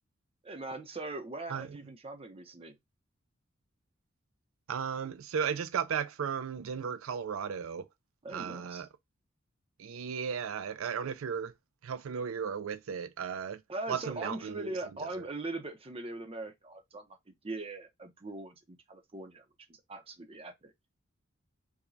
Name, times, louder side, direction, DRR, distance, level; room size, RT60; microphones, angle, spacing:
voice 1, 0.4-2.8 8.2-8.9 13.7-17.1 17.4-19.5 19.9-20.7, right 2 dB, 30° right, 0.7 m, -41 dB
voice 2, 4.7-7.9 8.3-8.9 9.8-11.5 11.8-13.6 13.9-14.7 15.2-15.3, right 7 dB, 85° right, 0.4 m, -35 dB
4.7 x 2.2 x 2.6 m
head